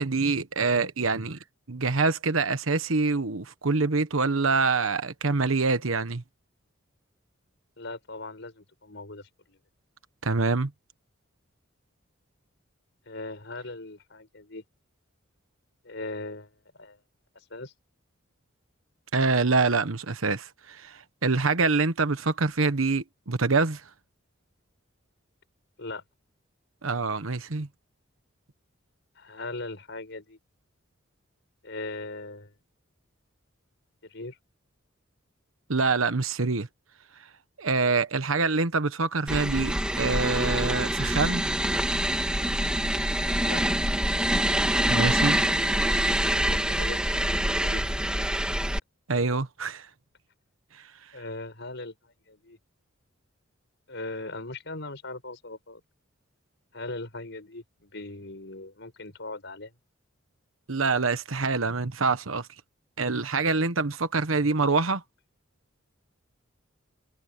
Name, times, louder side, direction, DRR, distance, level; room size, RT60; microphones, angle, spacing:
voice 1, 0.0-1.4 1.7-6.2 10.2-10.7 19.1-23.8 26.8-27.7 35.7-36.7 37.6-41.4 44.9-45.4 49.1-49.9 60.7-62.5 63.0-65.0, right 4 dB, 80° right, 1.2 m, -25 dB
voice 2, 7.8-9.6 13.0-14.6 15.8-17.0 17.3-17.7 25.8-26.0 29.2-30.4 31.6-32.5 34.0-34.4 43.4-43.7 46.1-47.9 51.1-52.6 53.9-55.8 56.7-59.7, left 2 dB, 60° left, 5.7 m, -39 dB
sound 1, 39.3-48.8, right 1 dB, 5° right, 2.2 m, -25 dB
head